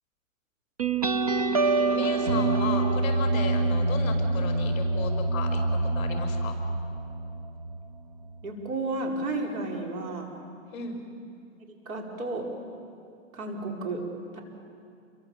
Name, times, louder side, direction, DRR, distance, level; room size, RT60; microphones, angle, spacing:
sound 1, 0.8-7.9, right 3 dB, 30° right, 0.5 m, -26 dB
voice 1, 1.9-5.6 5.9-6.6 10.7-11.0, left 5 dB, 15° left, 3 dB, 5.0 m, -35 dB
voice 2, 8.4-10.3 11.7-12.6 13.3-14.1 14.3-14.4, right 2 dB, 80° right, 1 dB, 5.3 m, -32 dB
29.5 x 24.0 x 7.3 m, 2.5 s
hypercardioid pair, 175°, 41 cm